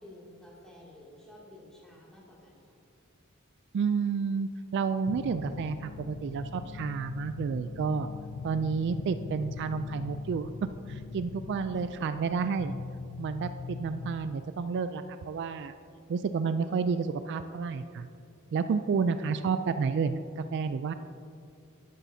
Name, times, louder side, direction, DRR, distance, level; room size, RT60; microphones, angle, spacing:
voice 1, 0.0-2.8 11.7-11.9, left 1 dB, 5° left, -6 dB, 2.4 m, -52 dB
voice 2, 3.7-8.1 8.4-12.7 13.2-15.7 16.1-18.1 18.5-20.9, right 5 dB, 55° right, 10 dB, 0.3 m, -30 dB
sound 1, 5.0-14.4, left 4 dB, 65° left, 0.4 m, -41 dB
12.0 x 12.0 x 2.7 m, 2.5 s
head